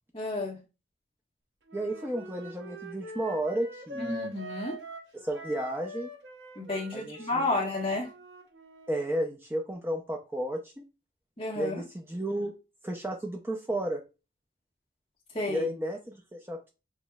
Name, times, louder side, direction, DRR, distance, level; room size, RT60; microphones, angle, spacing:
voice 1, 0.1-0.6 4.0-4.8 6.5-8.1 11.4-11.7 15.3-15.7, left 2 dB, 30° left, 1.3 m, -31 dB
voice 2, 1.7-4.3 5.1-6.1 6.9-7.5 8.9-10.8 11.6-12.5 12.8-14.0 15.5-16.7, right 1 dB, 10° right, 0.5 m, -33 dB
Wind instrument woodwind instrument, 1.7-9.1, equal, 75° right, 0.9 m, -43 dB
6.1 x 3.0 x 2.3 m
head